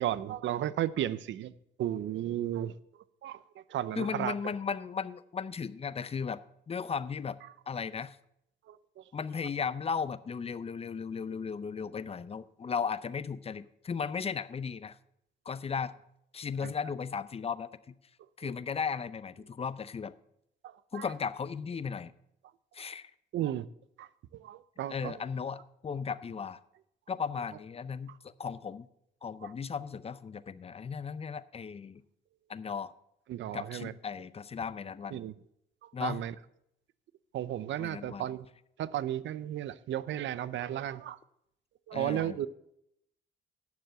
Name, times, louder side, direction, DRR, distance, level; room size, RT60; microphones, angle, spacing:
voice 1, 0.0-1.5 1.8-2.7 3.2-4.3 8.7-9.0 16.6-16.7 18.4-18.5 20.6-21.1 23.3-23.7 24.0-25.2 29.4-29.5 33.3-33.9 35.1-35.3 35.8-36.3 37.3-38.5 38.8-41.2 41.9-42.5, right 12 dB, 70° right, 0.6 m, -34 dB
voice 2, 4.0-6.4 6.7-7.4 7.7-8.2 9.1-15.0 15.5-15.9 16.3-17.9 18.4-20.1 20.9-22.1 22.7-23.1 24.9-26.6 27.1-28.9 29.2-32.0 32.5-32.9 33.5-35.2 35.9-36.2 37.8-38.2 41.9-42.4, left 6 dB, 30° left, 0.6 m, -36 dB
9.4 x 6.9 x 7.5 m
cardioid pair, 90°, 20 cm